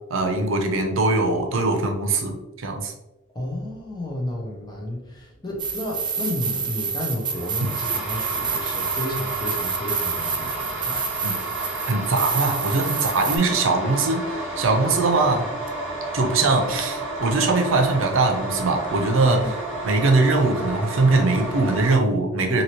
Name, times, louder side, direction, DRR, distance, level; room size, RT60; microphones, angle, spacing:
voice 1, 0.1-2.9 7.6-7.7 11.2-11.4 11.9-15.4 16.1-19.6 19.8-22.6, right 3 dB, 80° right, 4 dB, 0.6 m, -21 dB
voice 2, 3.3-11.2 19.3-19.5, left 1 dB, 20° left, -1 dB, 0.7 m, -32 dB
sound 1, 5.6-13.4, right 6 dB, 25° right, 0.3 m, -28 dB
sound 2, 7.2-22.0, right 2 dB, 5° right, 1.4 m, -31 dB
2.9 x 2.7 x 2.9 m, 0.99 s
head